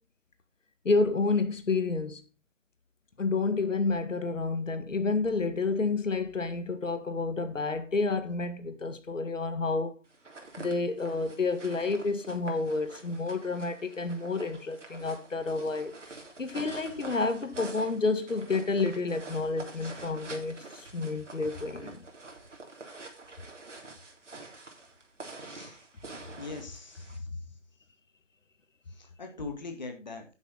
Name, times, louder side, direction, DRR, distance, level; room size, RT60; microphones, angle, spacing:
voice 1, 0.9-2.2 3.2-10.0 10.6-15.9 16.4-22.0, left 3 dB, 80° left, 2.0 m, -30 dB
sound 1, 10.1-27.2, right 3 dB, 70° right, 3.4 m, -46 dB
voice 2, 25.4-25.8 26.4-27.2 29.0-30.2, left 3 dB, 35° left, 1.9 m, -41 dB
11.0 x 8.2 x 4.1 m
hypercardioid pair, 180°, 37 cm